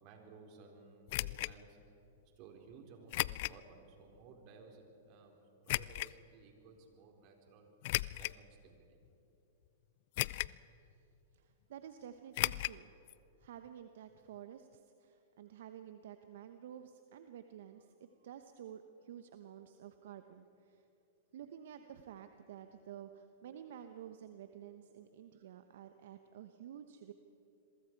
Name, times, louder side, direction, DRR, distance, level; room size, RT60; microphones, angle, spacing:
voice 1, 0.0-1.8 2.4-7.7 8.2-9.0, right 4 dB, 45° right, 2 dB, 4.1 m, -57 dB
sound 1, 1.1-1.5 3.1-3.6 4.2-4.3 5.7-6.1 7.8-8.4 9.0-9.1 10.2-10.6 10.9-11.0 12.3-12.8 13.1-13.2 13.4-13.5, left 19 dB, 55° left, 0.4 m, -35 dB
voice 2, 11.3-12.9 13.4-20.8 21.3-27.1, right 9 dB, 65° right, 8 dB, 1.0 m, -51 dB
27.0 x 23.0 x 4.7 m, 2.8 s
hypercardioid pair, 115°, 0 cm